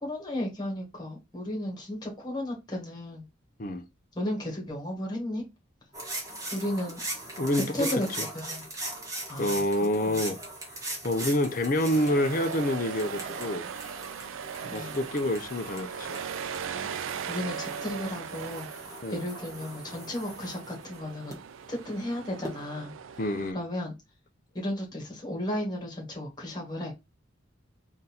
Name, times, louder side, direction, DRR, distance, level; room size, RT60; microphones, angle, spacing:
voice 1, 0.0-3.2 4.1-5.4 6.5-7.0 7.7-8.7 9.3-10.2 14.7-15.0 16.7-16.9 17.3-21.3 21.7-22.9 23.5-23.9 24.5-26.9, left 1 dB, 20° left, 1.6 m, -34 dB
sound 1, 5.9-21.4 22.4-22.6, right 1 dB, 15° right, 1.0 m, -40 dB
voice 2, 7.4-7.9 9.4-10.4 11.0-13.7 14.6-16.2 19.0-19.2 23.2-23.6, left 1 dB, 45° left, 0.5 m, -27 dB
sound 2, 11.6-23.5, right 7 dB, 85° right, 0.4 m, -39 dB
3.8 x 2.7 x 4.2 m
head